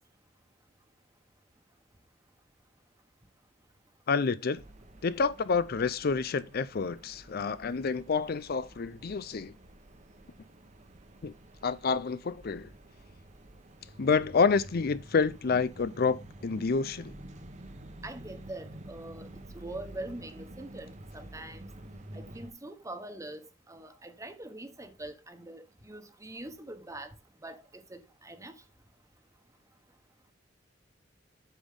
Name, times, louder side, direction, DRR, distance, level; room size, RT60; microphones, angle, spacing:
voice 1, 4.1-4.6 5.0-9.5 11.2-11.3 11.6-12.7 14.0-17.1, left 5 dB, 55° left, 0.5 m, -28 dB
sound 1, 4.5-22.5, right 1 dB, 40° right, 1.1 m, -49 dB
voice 2, 18.0-19.3 19.5-21.6 22.1-27.1 27.4-28.5, right 1 dB, 15° right, 1.3 m, -43 dB
8.4 x 7.2 x 3.7 m
head